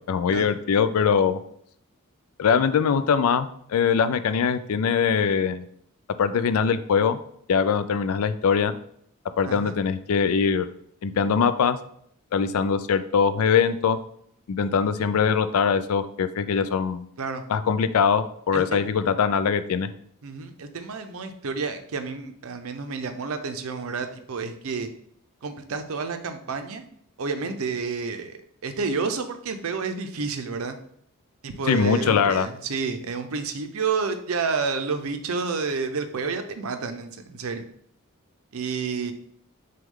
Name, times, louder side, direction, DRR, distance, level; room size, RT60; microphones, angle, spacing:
voice 1, 0.1-1.4 2.4-5.6 6.2-7.2 7.5-8.7 9.4-10.7 11.0-11.8 12.3-14.0 14.5-17.0 17.5-19.9 31.7-32.5, left 6 dB, 75° left, 12 dB, 0.4 m, -22 dB
voice 2, 9.4-9.7 17.2-17.4 18.5-18.8 20.2-24.9 25.4-26.8 27.2-30.8 31.4-37.7 38.5-39.1, right 4 dB, 70° right, 7 dB, 0.5 m, -30 dB
6.1 x 2.3 x 3.6 m, 0.66 s
head